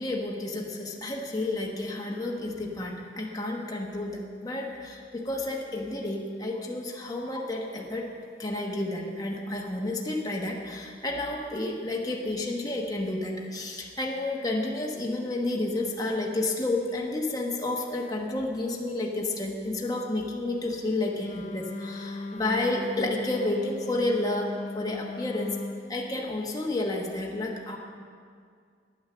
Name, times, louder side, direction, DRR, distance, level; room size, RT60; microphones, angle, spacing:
voice 1, 0.0-8.1 8.4-25.6 25.9-27.8, left 2 dB, 20° left, -1 dB, 1.1 m, -31 dB
Wind instrument woodwind instrument, 21.2-25.9, left 3 dB, 40° left, 0.6 m, -37 dB
9.7 x 9.4 x 6.8 m, 2.1 s
head